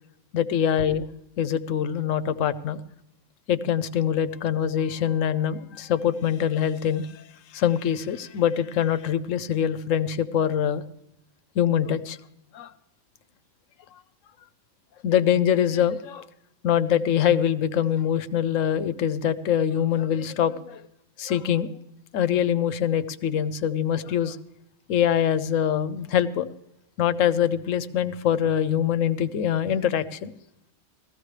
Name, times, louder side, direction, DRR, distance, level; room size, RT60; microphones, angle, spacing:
voice 1, 0.3-1.0 1.4-2.8 3.5-7.2 7.5-10.8 11.6-12.2 12.5-12.7 15.0-16.3 16.6-20.8 21.2-21.8 22.1-24.4 24.9-26.5 27.0-30.3, left 9 dB, 85° left, 13 dB, 1.0 m, -24 dB
18.0 x 14.5 x 3.3 m, 0.82 s
omnidirectional pair, 1.3 m